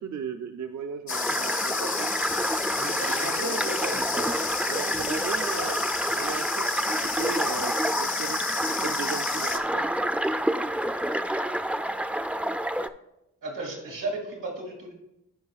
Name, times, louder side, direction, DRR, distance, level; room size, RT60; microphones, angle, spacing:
voice 1, 0.0-2.1 3.0-3.6 4.7-5.8 6.1-8.4 8.7-10.0, right 5 dB, 60° right, 5 dB, 0.5 m, -36 dB
sound 1, 1.1-9.6, left 6 dB, 65° left, 0.8 m, -32 dB
sound 2, 1.1-12.9, right 1 dB, 5° right, 0.3 m, -28 dB
voice 2, 2.8-4.3 13.4-14.9, right 2 dB, 85° right, 0 dB, 2.1 m, -35 dB
14.5 x 4.9 x 2.4 m, 0.86 s
cardioid pair, 40°, 31 cm